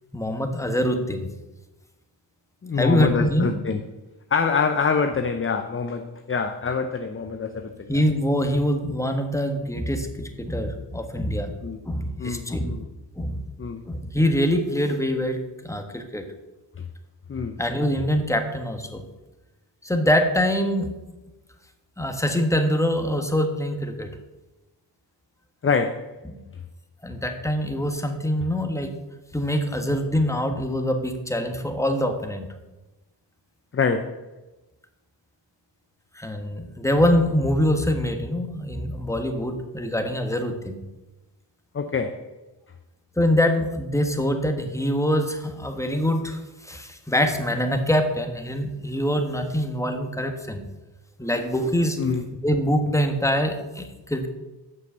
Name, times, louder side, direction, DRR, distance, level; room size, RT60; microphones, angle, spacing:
voice 1, 0.1-1.3 2.8-3.5 7.9-11.5 11.8-12.8 13.2-13.5 13.9-16.2 17.6-19.0 19.8-20.9 22.0-24.1 26.3-26.4 27.0-28.9 29.3-32.5 36.1-40.8 43.2-50.7 51.2-52.0 52.4-54.3, equal, 5° left, 1.5 m, -24 dB
voice 2, 2.6-3.8 4.3-8.0 11.6-11.8 12.2-12.9 13.6-13.8 16.8-16.9 17.3-17.6 25.6-26.2 33.7-34.2 41.7-42.2 52.0-52.2, left 5 dB, 30° left, 0.7 m, -25 dB
7.7 x 6.4 x 6.8 m
cardioid pair, 65°, 45 cm